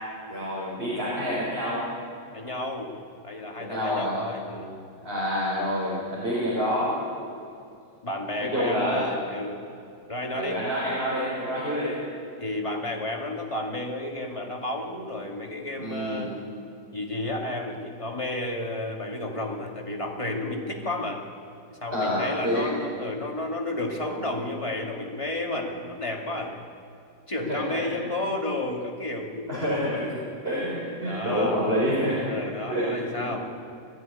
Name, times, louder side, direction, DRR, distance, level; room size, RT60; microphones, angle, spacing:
voice 1, 0.3-1.9 3.6-4.2 5.0-7.0 8.4-9.1 10.3-12.0 15.8-16.3 21.9-22.6 27.5-27.8 29.5-30.1 30.4-32.3 32.7-33.3, equal, 35° right, -7 dB, 5.3 m, -27 dB
voice 2, 2.3-2.9 3.2-4.8 7.2-7.4 8.0-9.6 10.1-10.6 12.4-16.4 16.9-21.2 21.7-26.6 27.3-30.2 31.0-31.6 32.3-33.5, left 1 dB, 20° left, 0 dB, 2.3 m, -32 dB
19.0 x 14.5 x 9.7 m, 2.5 s
omnidirectional pair, 1.9 m